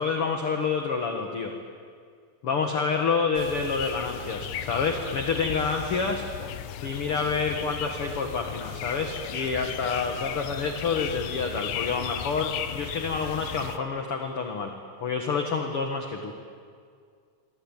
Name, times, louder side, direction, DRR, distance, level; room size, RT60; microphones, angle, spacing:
voice 1, 0.0-1.5 2.4-6.2 6.8-14.7 15.0-16.3, left 5 dB, 45° left, 4 dB, 2.2 m, -28 dB
sound 1, 3.4-13.8, left 10 dB, 80° left, 2.8 m, -36 dB
27.0 x 24.0 x 9.0 m, 2.1 s
omnidirectional pair, 4.0 m